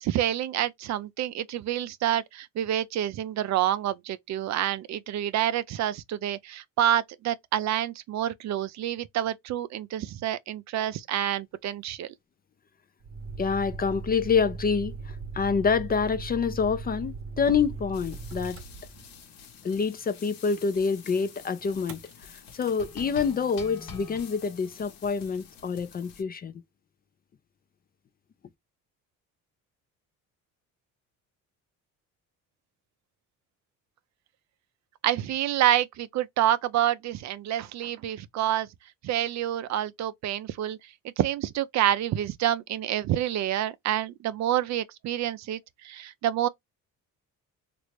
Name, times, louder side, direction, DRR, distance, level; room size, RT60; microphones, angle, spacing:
voice 1, 0.0-12.1 35.0-38.7 39.0-46.5, right 12 dB, 55° right, 0.4 m, -28 dB
Motor vehicle (road), 13.0-19.4 21.7-22.1 22.5-22.8, right 4 dB, 40° right, 0.9 m, -39 dB
voice 2, 13.4-18.6 19.6-22.0 22.5-26.5, left 5 dB, 30° left, 0.4 m, -27 dB
sound 1, 17.9-26.2, left 6 dB, 85° left, 1.0 m, -47 dB
3.1 x 2.5 x 3.1 m
cardioid pair, 105°, 33 cm